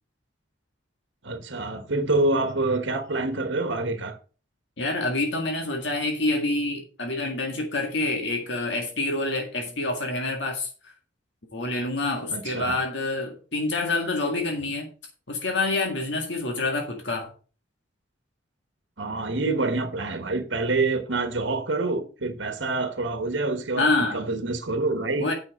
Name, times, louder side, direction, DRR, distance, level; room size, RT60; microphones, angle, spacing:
voice 1, 1.2-4.2 12.3-12.8 19.0-23.9 24.1-25.3, right 2 dB, 75° right, 1.3 m, -26 dB
voice 2, 4.8-10.9 11.5-14.9 15.3-17.3 23.8-24.2 25.2-25.3, left 2 dB, 70° left, 1.9 m, -27 dB
9.1 x 6.1 x 5.2 m
head